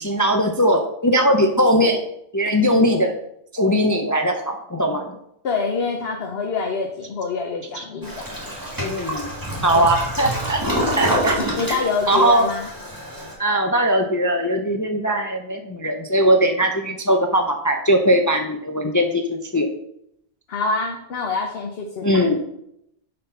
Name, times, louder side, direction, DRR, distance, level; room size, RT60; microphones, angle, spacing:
voice 1, 0.0-2.0 2.3-3.1 3.5-5.2 7.8-7.9 8.8-9.3 9.6-10.6 11.0-11.4 11.7-11.8 12.1-12.5 13.4-19.7 22.0-22.4, equal, 20° left, 4 dB, 0.5 m, -20 dB
voice 2, 5.4-8.3 9.7-9.9 11.4-12.7 20.5-22.4, left 4 dB, 65° left, 2 dB, 1.1 m, -26 dB
Toilet flush, 8.0-13.3, equal, 20° right, 1.9 m, -27 dB
7.0 x 4.3 x 5.5 m, 0.75 s
omnidirectional pair, 1.1 m